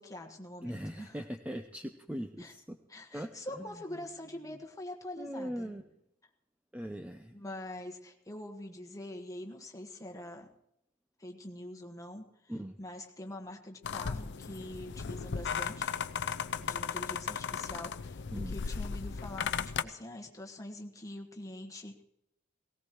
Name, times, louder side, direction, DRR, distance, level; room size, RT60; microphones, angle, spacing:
voice 1, 0.0-1.2 2.4-2.5 2.9-5.7 7.3-10.5 11.2-12.5 12.8-15.9 16.6-22.0, left 1 dB, 15° left, 2 dB, 1.4 m, -44 dB
voice 2, 0.6-2.8 3.1-3.7 5.2-5.8 6.7-7.4 12.5-12.7 18.3-18.5, equal, 5° right, 6 dB, 0.5 m, -40 dB
sound 1, 13.8-19.8, left 6 dB, 55° left, 0.5 m, -36 dB
18.0 x 18.0 x 3.0 m, 0.78 s
head